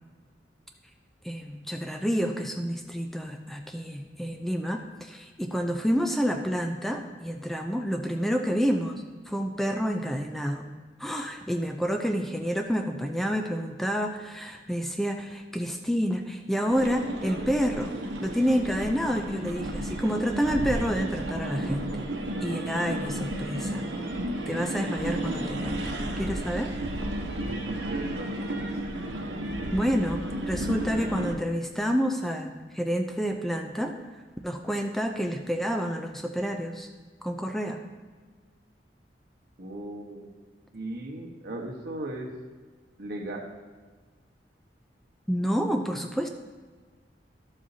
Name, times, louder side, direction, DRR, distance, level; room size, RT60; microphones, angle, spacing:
voice 1, 1.2-10.7 11.0-17.9 18.2-22.1 22.4-23.8 24.5-25.8 26.2-26.7 29.7-33.9 34.4-36.9 37.2-37.8 45.3-46.3, equal, ahead, 3 dB, 0.5 m, -29 dB
sound 1, 16.7-31.4, right 1 dB, 85° right, 1.0 m, -33 dB
voice 2, 27.4-28.5 39.6-40.3 40.7-42.3 43.0-43.5, right 1 dB, 65° right, -1 dB, 1.3 m, -37 dB
12.0 x 7.4 x 2.8 m, 1.4 s
head